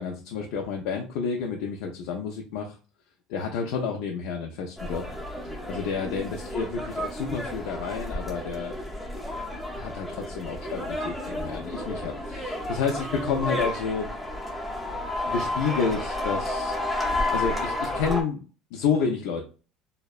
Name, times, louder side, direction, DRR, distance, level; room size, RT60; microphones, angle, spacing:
voice 1, 0.0-2.8 3.3-5.0 5.7-8.8 9.7-14.1 15.3-16.7 17.3-18.5 18.7-19.4, left 5 dB, 75° left, 1 dB, 0.4 m, -30 dB
sound 1, 4.8-18.2, left 1 dB, 5° left, 0.5 m, -31 dB
2.6 x 2.1 x 2.3 m, 0.36 s
cardioid pair, 160°, 0 cm